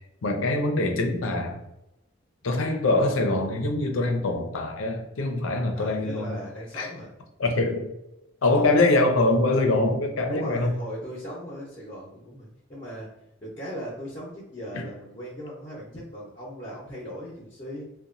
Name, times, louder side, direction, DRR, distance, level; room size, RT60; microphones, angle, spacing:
voice 1, 0.2-1.6 2.4-6.4 6.7-6.9 7.4-7.9 8.4-10.7 14.7-14.8, left 2 dB, 85° left, 4 dB, 0.5 m, -24 dB
voice 2, 5.7-7.1 8.4-8.7 10.3-13.1 13.4-17.8, equal, 30° left, -6 dB, 0.7 m, -38 dB
2.8 x 2.2 x 2.5 m, 0.88 s
head